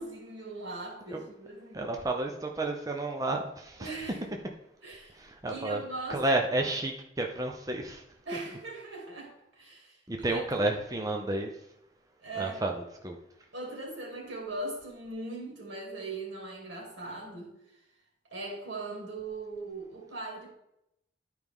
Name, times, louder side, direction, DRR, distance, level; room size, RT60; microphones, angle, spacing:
voice 1, 0.0-2.0 3.8-4.2 4.8-5.1 5.4-6.2 8.3-10.7 12.2-12.7 13.5-17.5 18.3-20.5, right 2 dB, 90° right, -1 dB, 2.6 m, -40 dB
voice 2, 1.7-4.0 5.1-5.8 6.1-8.0 10.1-11.6 12.4-13.2, right 2 dB, 20° right, 2 dB, 0.6 m, -31 dB
11.0 x 4.7 x 3.6 m, 0.80 s
head